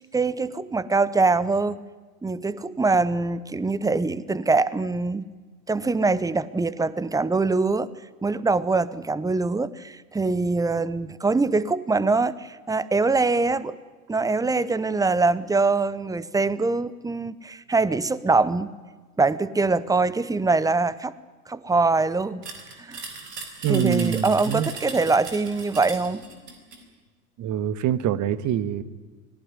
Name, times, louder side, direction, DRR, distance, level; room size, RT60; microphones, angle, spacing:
voice 1, 0.0-1.8 2.2-5.3 5.7-7.9 8.2-13.8 14.1-18.7 19.2-21.1 21.5-22.4 22.8-23.0 23.7-26.2, right 3 dB, 5° right, 19 dB, 0.9 m, -23 dB
sound 1, 22.4-26.9, right 4 dB, 85° right, 4.7 m, -38 dB
voice 2, 23.6-24.7 27.4-28.8, right 10 dB, 40° right, 15 dB, 1.6 m, -25 dB
24.5 x 18.0 x 9.7 m, 1.3 s
hypercardioid pair, 90°, 48 cm